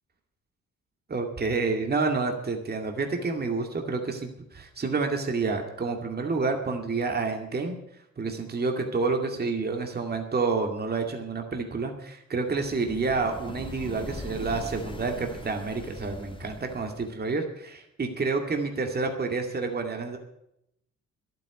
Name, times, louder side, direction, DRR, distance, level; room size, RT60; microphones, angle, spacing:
voice 1, 1.1-7.8 8.2-20.2, right 4 dB, 30° right, 3 dB, 2.2 m, -29 dB
sound 1, 12.5-17.2, left 2 dB, 15° left, 1.7 m, -41 dB
11.5 x 9.2 x 9.5 m, 0.80 s
cardioid pair, 90°, 30 cm